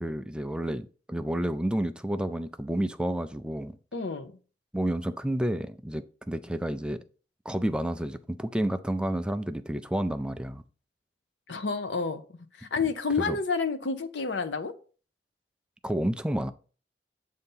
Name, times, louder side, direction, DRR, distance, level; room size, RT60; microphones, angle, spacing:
voice 1, 0.0-3.8 4.7-7.0 7.5-10.6 13.2-13.4 15.8-16.5, right 1 dB, 5° right, 0.3 m, -30 dB
voice 2, 3.9-4.3 11.5-14.7, left 4 dB, 85° left, 0.7 m, -30 dB
7.8 x 2.8 x 5.4 m
head